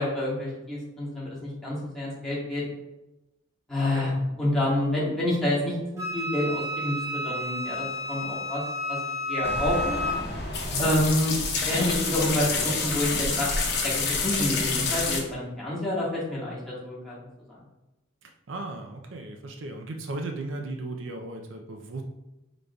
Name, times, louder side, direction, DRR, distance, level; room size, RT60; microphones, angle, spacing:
voice 1, 0.0-2.6 3.7-4.1 4.4-8.6 8.9-9.0 9.3-10.0 10.8-13.5 13.8-17.2, left 1 dB, ahead, -9 dB, 1.5 m, -28 dB
voice 2, 3.8-4.1 10.7-10.9 18.2-22.0, right 2 dB, 70° right, 3 dB, 0.5 m, -36 dB
Wind instrument woodwind instrument, 6.0-10.2, left 1 dB, 15° right, 1.0 m, -31 dB
sound 1, 9.4-15.2, left 4 dB, 55° left, 0.8 m, -28 dB
4.9 x 3.9 x 2.3 m, 0.98 s
head